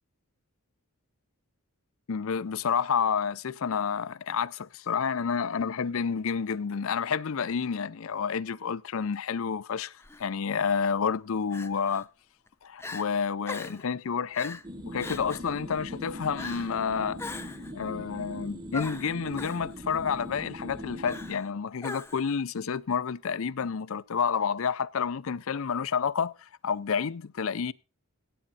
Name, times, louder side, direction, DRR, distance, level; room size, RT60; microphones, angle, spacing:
voice 1, 2.1-9.9 10.2-12.1 12.6-14.6 14.9-27.7, left 6 dB, 65° left, 0.5 m, -29 dB
Crying sobbing, 10.0-10.2 11.5-12.0 12.5-12.6 12.8-13.1 13.5-13.8 14.3-14.6 15.0-15.5 16.4-16.7 17.2-17.7 18.7-19.6 21.1-21.5 21.8-22.3, left 3 dB, 10° left, 0.7 m, -40 dB
sound 1, 14.6-21.3, equal, 20° right, 1.3 m, -41 dB
16.5 x 8.7 x 4.1 m
head